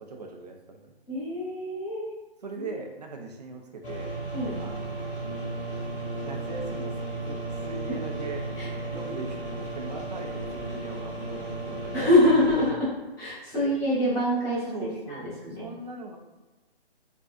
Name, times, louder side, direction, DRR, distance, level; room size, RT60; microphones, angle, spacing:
voice 1, 0.0-0.9 2.4-4.2 4.6-5.1 6.2-7.0 7.2-8.5 8.9-12.1 13.5-13.7 14.7-16.2, right 3 dB, 40° right, 2 dB, 0.5 m, -40 dB
voice 2, 1.1-2.1 4.3-4.5 8.6-8.7 11.9-12.9 13.2-14.7 15.1-15.6, left 1 dB, 10° left, -11 dB, 1.1 m, -24 dB
sound 1, 3.8-12.7, right 3 dB, 60° left, 0.9 m, -35 dB
Brass instrument, 5.2-12.3, left 4 dB, 35° left, 0.5 m, -43 dB
5.0 x 2.3 x 2.5 m, 1.1 s
figure-of-eight pair, 140°, 31 cm